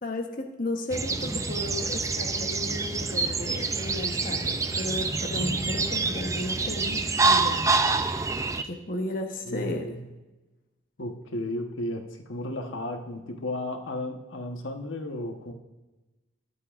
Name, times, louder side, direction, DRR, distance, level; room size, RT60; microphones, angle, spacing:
voice 1, 0.0-7.0 7.2-8.3 8.6-9.9, left 2 dB, 45° left, 3 dB, 1.0 m, -34 dB
sound 1, 0.9-8.6, right 3 dB, 15° right, 0.4 m, -27 dB
voice 2, 9.5-10.1 11.0-15.5, left 1 dB, 80° left, 4 dB, 1.1 m, -34 dB
21.0 x 8.3 x 2.5 m, 1.1 s
head